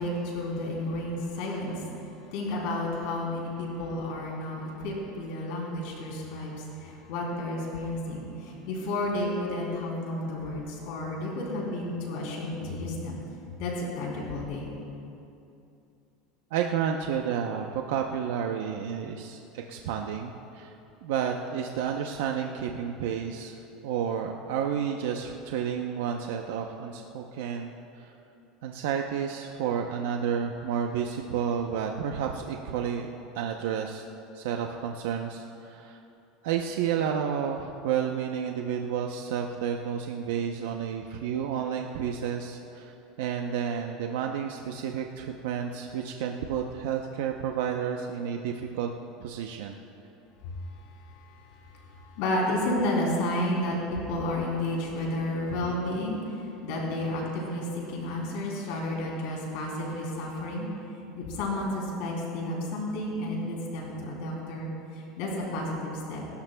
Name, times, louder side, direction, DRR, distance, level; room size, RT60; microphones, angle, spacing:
voice 1, 0.0-13.2 13.6-14.7 50.6-60.7 61.2-66.2, left 1 dB, 60° left, -3 dB, 3.3 m, -32 dB
voice 2, 16.5-20.7 21.0-23.5 23.8-28.1 28.6-33.1 33.3-34.0 34.3-36.0 36.4-48.9 49.2-49.8, right 8 dB, 80° right, 3 dB, 0.7 m, -31 dB
27.0 x 13.0 x 2.3 m, 2.8 s
cardioid pair, 170°, 0 cm